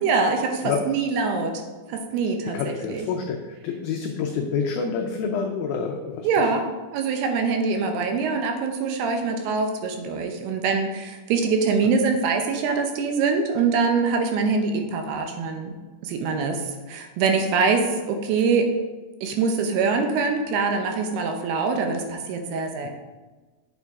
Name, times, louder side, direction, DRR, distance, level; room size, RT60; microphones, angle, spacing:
voice 1, 0.0-1.6 1.9-3.1 6.2-6.6 6.9-15.8 16.0-18.7 19.2-22.9, right 4 dB, 75° right, 4 dB, 2.7 m, -24 dB
voice 2, 2.5-6.3 22.8-22.9, left 6 dB, 85° left, 3 dB, 2.1 m, -28 dB
9.0 x 7.1 x 3.6 m, 1.3 s
omnidirectional pair, 5.0 m